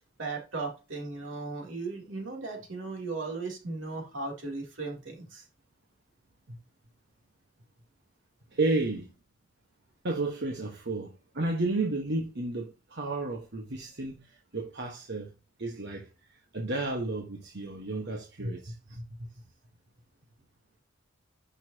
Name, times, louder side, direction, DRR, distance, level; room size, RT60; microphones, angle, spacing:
voice 1, 0.2-5.4, right 3 dB, 80° right, 3.2 m, -36 dB
voice 2, 8.5-9.1 10.0-14.2 14.5-15.3 15.6-16.1 16.5-18.7, right 2 dB, 60° right, 1.5 m, -32 dB
11.0 x 5.8 x 2.9 m
head